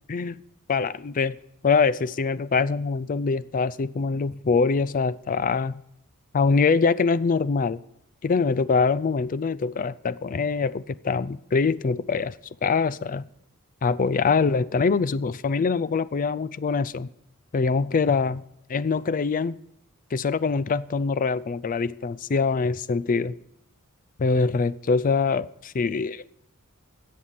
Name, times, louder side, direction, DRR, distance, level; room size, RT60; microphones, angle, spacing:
voice 1, 0.7-1.4 1.6-5.7 6.3-7.8 8.2-12.3 12.6-13.3 13.8-17.1 17.5-18.4 18.7-19.6 20.1-23.3 24.2-26.3, left 4 dB, 40° left, 0.4 m, -24 dB
13.5 x 8.4 x 5.7 m
head